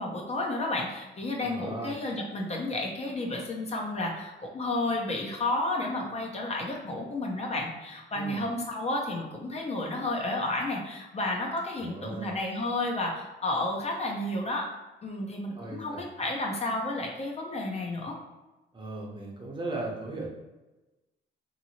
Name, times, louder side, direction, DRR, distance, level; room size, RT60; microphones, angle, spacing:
voice 1, 0.0-14.7 15.0-18.1, left 2 dB, 35° left, 0 dB, 0.5 m, -31 dB
voice 2, 1.4-1.9 8.1-8.4 11.8-12.3 15.6-16.0 18.7-20.3, right 2 dB, 25° right, -2 dB, 0.7 m, -37 dB
2.7 x 2.6 x 2.8 m, 1.1 s
cardioid pair, 90°, 20 cm